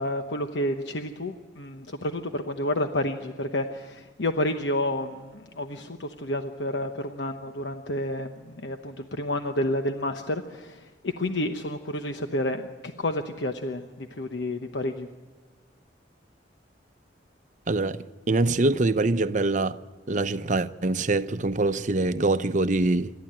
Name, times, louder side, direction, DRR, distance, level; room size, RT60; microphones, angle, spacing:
voice 1, 0.0-15.1, left 1 dB, 70° left, 1.0 m, -30 dB
voice 2, 17.7-18.0 18.3-19.8 20.1-23.1, right 2 dB, 40° right, 0.7 m, -24 dB
27.5 x 13.0 x 8.9 m
head